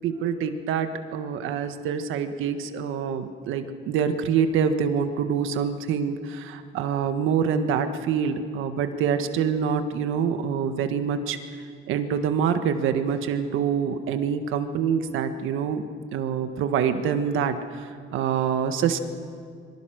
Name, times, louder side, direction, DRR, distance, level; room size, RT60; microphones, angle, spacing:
voice 1, 0.0-11.4 11.9-15.8 16.1-19.0, right 7 dB, 90° right, 8 dB, 1.6 m, -26 dB
25.5 x 23.5 x 6.5 m, 2.3 s
cardioid pair, 90°, 20 cm